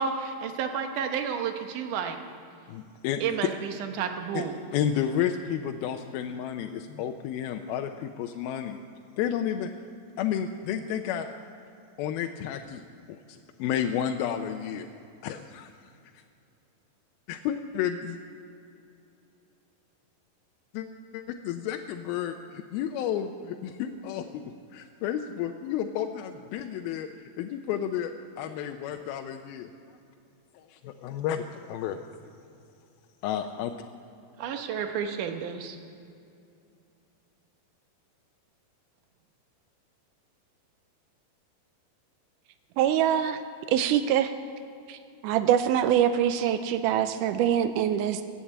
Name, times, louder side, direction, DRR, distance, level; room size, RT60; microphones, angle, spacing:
voice 1, 0.0-2.2 3.2-4.6 34.4-35.8, right 7 dB, 70° right, 6 dB, 2.4 m, -31 dB
voice 2, 2.7-3.2 4.3-4.4 4.7-8.8 9.2-9.7 10.2-11.3 12.0-12.8 13.1-14.9 15.2-15.7 17.3-18.2 20.7-20.9 21.1-27.1 27.4-28.1 28.4-29.7 30.5-32.0 33.2-33.7, left 9 dB, 85° left, 5 dB, 2.5 m, -31 dB
voice 3, 42.8-43.4 43.7-44.3 44.9-45.0 45.2-48.2, right 10 dB, 85° right, 10 dB, 1.9 m, -24 dB
15.5 x 10.0 x 8.6 m, 2.5 s
omnidirectional pair, 4.2 m